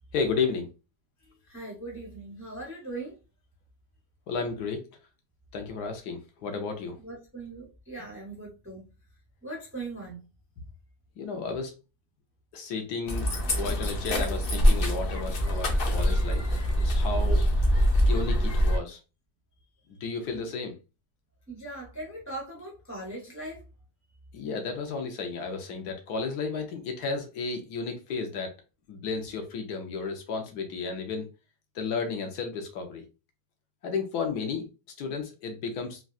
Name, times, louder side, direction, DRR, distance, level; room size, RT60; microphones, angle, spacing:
voice 1, 0.1-0.7 4.3-4.8 5.5-7.0 11.2-11.7 12.5-16.4 16.8-17.5 18.1-19.0 20.0-20.7 24.3-28.5 28.9-31.3 31.7-33.0 33.8-34.7 35.0-36.0, left 4 dB, 70° left, 1.2 m, -33 dB
voice 2, 1.4-3.2 7.0-8.8 9.4-10.2 21.5-23.6, right 2 dB, 15° right, 0.4 m, -39 dB
sound 1, 13.1-18.8, equal, 90° left, 0.5 m, -24 dB
3.8 x 2.3 x 2.3 m
omnidirectional pair, 1.8 m